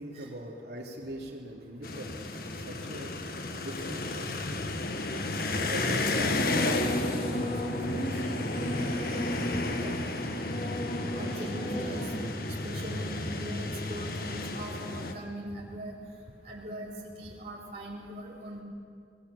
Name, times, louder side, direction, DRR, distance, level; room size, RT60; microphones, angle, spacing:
voice 1, 0.0-3.1 3.6-4.3 5.6-10.0, right 1 dB, 65° right, 0 dB, 3.4 m, -42 dB
sound 1, 1.8-15.1, left 2 dB, 55° left, 1.7 m, -32 dB
Singing / Musical instrument, 6.1-12.3, equal, 35° left, 2.7 m, -35 dB
voice 2, 11.1-15.9 16.4-18.6, right 1 dB, 40° right, -4 dB, 4.1 m, -41 dB
27.5 x 21.0 x 7.3 m, 2.3 s
head